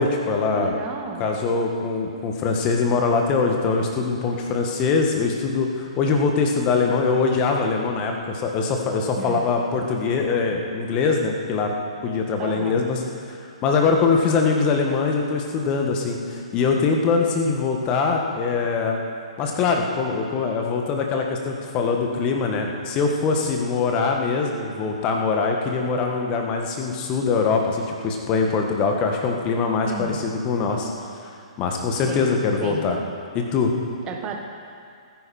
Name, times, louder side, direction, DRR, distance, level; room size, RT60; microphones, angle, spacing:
voice 1, 0.0-0.7 1.2-11.7 12.0-13.0 13.3-19.0 19.4-30.9 31.6-33.0 33.3-33.7, left 4 dB, 25° left, 2 dB, 1.8 m, -23 dB
voice 2, 0.5-1.3 9.2-9.5 12.4-12.8 29.9-30.3 32.1-32.4 32.6-32.9 34.0-34.4, right 5 dB, 25° right, 2 dB, 1.6 m, -33 dB
19.5 x 10.5 x 4.5 m, 2.3 s
figure-of-eight pair, 120°, 3 cm